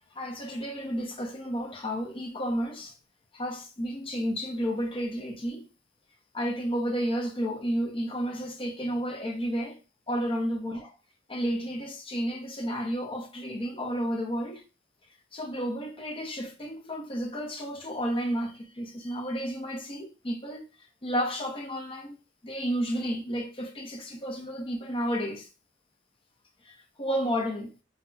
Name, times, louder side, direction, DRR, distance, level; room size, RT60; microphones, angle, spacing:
voice 1, 0.2-2.9 3.3-5.7 6.3-9.8 10.1-10.9 11.3-14.6 15.3-20.6 21.0-22.2 22.4-25.5 26.7-27.7, equal, 30° left, 0.6 m, -31 dB
4.0 x 2.1 x 2.2 m
head